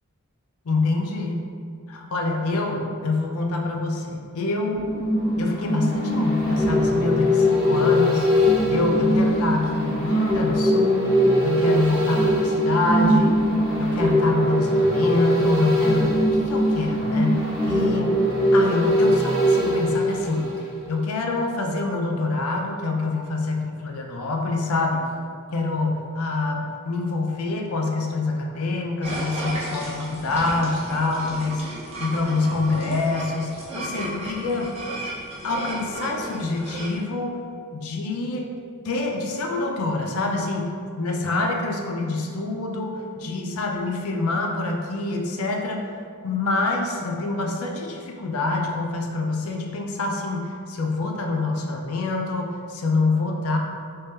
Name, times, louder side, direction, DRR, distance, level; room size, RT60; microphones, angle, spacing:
voice 1, 0.7-1.5 1.9-4.8 5.4-8.3 8.7-11.1 11.4-13.4 13.8-18.2 18.5-20.5 20.9-25.1 25.5-31.7 32.0-34.7 35.4-37.4 37.7-38.5 38.8-45.8 46.2-53.6, left 3 dB, 80° left, 2 dB, 0.5 m, -26 dB
sound 1, 4.7-21.0 21.3-21.4, equal, 10° right, 1.0 m, -21 dB
sound 2, 29.0-37.0, right 1 dB, 30° right, 0.6 m, -34 dB
3.5 x 2.8 x 3.2 m, 2.3 s
head